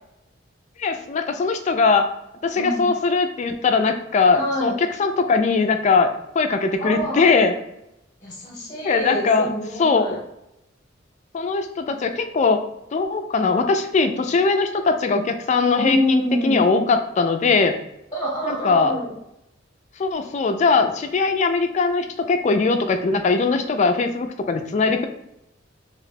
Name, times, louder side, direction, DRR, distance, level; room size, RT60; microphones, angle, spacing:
voice 1, 0.8-2.1 2.4-7.6 8.8-9.5 9.8-10.2 11.3-12.6 12.9-17.7 18.5-18.9 20.0-25.1, left 4 dB, 35° left, 7 dB, 0.3 m, -20 dB
voice 2, 2.6-2.9 4.3-4.8 6.8-7.2 8.2-10.2 15.7-16.6 18.1-19.1, left 1 dB, 20° left, -4 dB, 0.9 m, -26 dB
2.8 x 2.2 x 4.0 m, 0.85 s
head